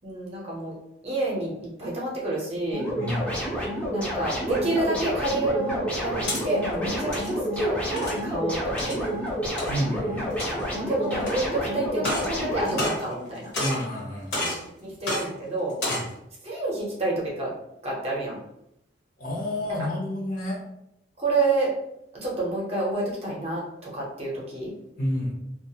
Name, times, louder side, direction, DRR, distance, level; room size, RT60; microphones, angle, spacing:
voice 1, 0.0-0.7 1.0-2.9 3.9-9.1 10.7-13.5 14.8-15.8 16.4-17.5 17.8-18.4 21.2-21.7 22.2-24.7, right 2 dB, 35° right, -4 dB, 0.7 m, -28 dB
sound 1, 2.7-12.9, equal, 5° left, 0.5 m, -29 dB
voice 2, 2.9-3.3 9.7-10.3 13.6-14.5 15.9-16.0 19.2-20.7 25.0-25.3, equal, 45° left, -4 dB, 0.7 m, -30 dB
sound 2, 6.0-6.4 7.0-7.3 8.0-8.2 8.8-9.0 9.6-9.7 10.3-10.7 11.2-11.3 11.9-12.3 12.6-13.3 13.5-13.9 14.3-14.6 15.0-15.2 15.7-16.1, left 1 dB, 65° left, 1.3 m, -29 dB
2.3 x 2.0 x 2.7 m, 0.81 s
head